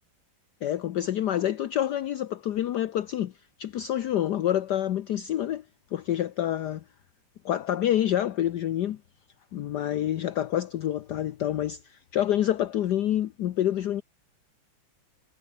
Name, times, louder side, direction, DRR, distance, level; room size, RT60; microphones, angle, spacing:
voice 1, 0.6-3.3 3.6-5.6 5.9-6.8 7.4-9.0 9.5-14.0, left 11 dB, 65° left, 1.3 m, -27 dB
omnidirectional pair, 2.2 m